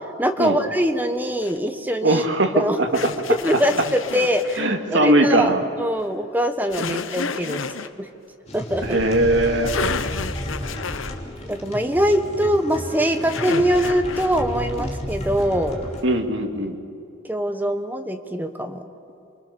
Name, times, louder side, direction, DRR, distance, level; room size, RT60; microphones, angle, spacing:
voice 1, 0.2-2.2 2.6-2.8 3.4-4.7 4.9-7.6 8.0-8.1 8.5-9.0 11.4-15.8 17.3-18.8, equal, 10° right, 6 dB, 1.3 m, -23 dB
sound 1, 1.4-1.6 2.9-4.6 6.7-7.9 9.3-9.4 9.7-11.2 13.3-14.4, left 5 dB, 85° left, 1.0 m, -30 dB
voice 2, 2.0-2.9 4.6-5.7 8.8-9.7 16.0-16.8, right 1 dB, 65° right, 4 dB, 2.1 m, -20 dB
sound 2, 8.5-16.0, equal, 35° left, 3.1 m, -32 dB
28.5 x 23.5 x 7.0 m, 2.5 s
head